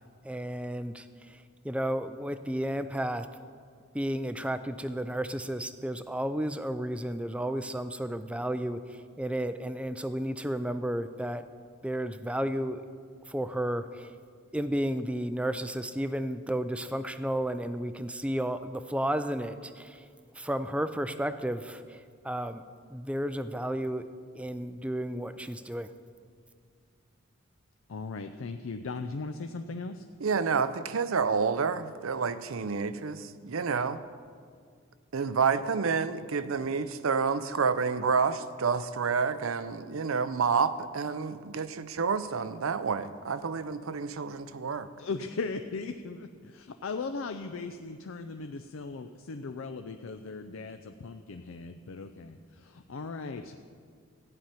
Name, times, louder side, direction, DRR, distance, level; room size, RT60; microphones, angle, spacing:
voice 1, 0.2-1.0 1.6-3.3 3.9-11.4 11.8-12.8 13.3-14.1 14.5-20.0 20.4-22.6 22.9-24.0 24.4-25.9, right 1 dB, 5° right, 11 dB, 0.4 m, -32 dB
voice 2, 27.9-30.1 45.0-53.6, left 4 dB, 70° left, 7 dB, 0.5 m, -38 dB
voice 3, 30.2-34.0 35.1-44.9, right 5 dB, 80° right, 13 dB, 0.6 m, -29 dB
14.0 x 5.7 x 9.0 m, 2.1 s
head